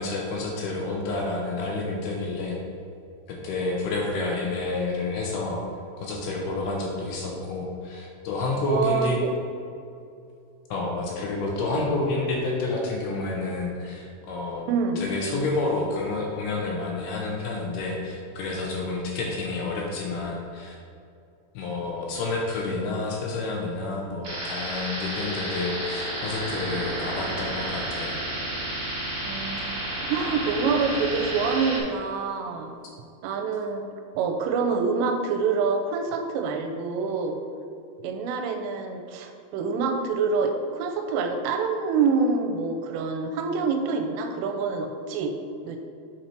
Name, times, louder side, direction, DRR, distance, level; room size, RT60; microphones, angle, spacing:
voice 1, 0.0-2.6 3.3-5.6 6.0-9.2 10.7-14.7 15.0-20.8 21.5-28.1, left 3 dB, 80° left, -1 dB, 2.5 m, -29 dB
voice 2, 8.7-9.3 11.7-11.8 14.7-15.0 29.2-29.6 30.1-32.8 33.2-33.8 34.2-37.4 38.0-45.4 45.7-45.8, right 5 dB, 90° right, 4 dB, 2.8 m, -26 dB
sound 1, 24.2-31.8, right 1 dB, 55° right, 1.3 m, -31 dB
8.1 x 4.3 x 4.4 m, 2.6 s
omnidirectional pair, 5.0 m